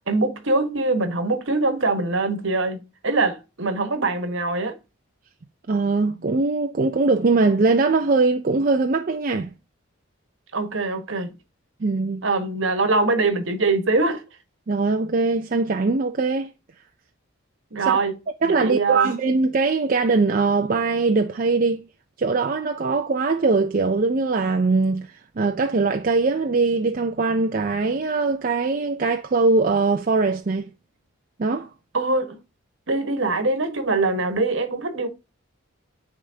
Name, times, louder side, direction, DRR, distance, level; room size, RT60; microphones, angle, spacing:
voice 1, 0.1-4.8 10.5-11.3 12.2-14.2 17.7-18.1 18.4-19.2 31.9-32.4 32.9-35.1, right 3 dB, 60° right, 1.3 m, -23 dB
voice 2, 5.7-9.5 11.8-12.2 14.7-16.5 17.8-18.0 18.4-21.8 22.2-30.7 31.4-31.7, right 3 dB, 40° right, 0.4 m, -21 dB
9.7 x 3.6 x 2.7 m
head